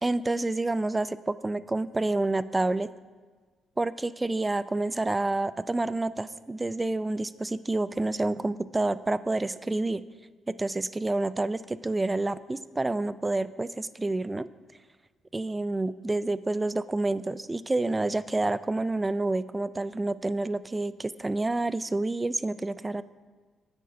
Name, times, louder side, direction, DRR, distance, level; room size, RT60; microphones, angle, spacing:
voice 1, 0.0-2.9 3.8-10.0 10.5-14.5 15.3-23.0, right 2 dB, 20° right, 16 dB, 0.4 m, -28 dB
9.2 x 8.0 x 5.7 m, 1.4 s
cardioid pair, 90°, 0 cm